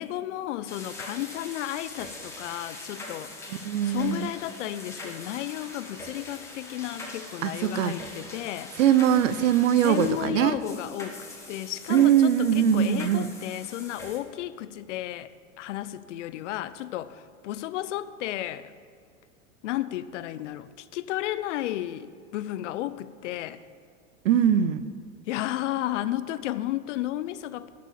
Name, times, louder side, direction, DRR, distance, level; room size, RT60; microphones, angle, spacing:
voice 1, 0.0-3.5 3.8-8.7 9.8-11.2 11.5-15.3 15.6-18.7 19.6-23.6 25.3-27.7, left 14 dB, 60° left, 14 dB, 0.7 m, -33 dB
sound 1, 0.7-14.2, left 2 dB, 5° left, 2.0 m, -42 dB
voice 2, 3.6-4.3 7.4-7.9 8.8-10.6 11.9-13.3 24.2-24.8, right 10 dB, 70° right, 14 dB, 0.8 m, -21 dB
11.5 x 6.3 x 8.7 m, 2.1 s
hypercardioid pair, 110°, 40 cm